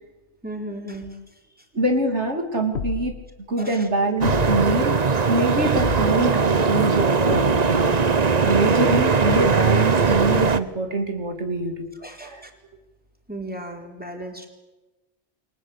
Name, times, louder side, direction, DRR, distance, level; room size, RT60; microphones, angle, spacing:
voice 1, 0.4-1.2 3.6-3.9 12.0-12.5 13.3-14.5, right 1 dB, 10° right, 2 dB, 4.2 m, -35 dB
voice 2, 1.7-3.1 3.5-5.0 5.3-7.9 8.5-11.9 12.2-12.5, right 2 dB, 90° right, 4 dB, 3.4 m, -24 dB
sound 1, 2.7-3.4 4.2-4.8 5.8-6.4 7.3-7.9, left 6 dB, 75° left, 1.4 m, -31 dB
sound 2, 4.2-10.6, right 5 dB, 40° right, 1.1 m, -20 dB
29.5 x 23.0 x 8.5 m, 1.1 s
omnidirectional pair, 1.1 m